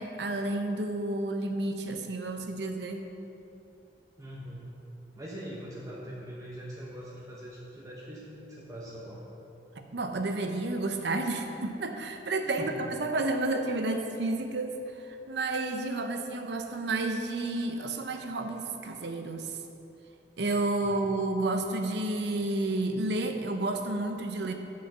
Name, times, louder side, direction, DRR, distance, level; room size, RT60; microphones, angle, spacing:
voice 1, 0.0-3.0 9.9-19.5 20.4-24.5, right 2 dB, 70° right, 5 dB, 0.8 m, -31 dB
voice 2, 4.2-4.7 5.2-9.3 12.4-12.9 20.8-21.1, equal, 20° right, -5 dB, 0.9 m, -42 dB
6.9 x 6.4 x 6.8 m, 2.8 s
head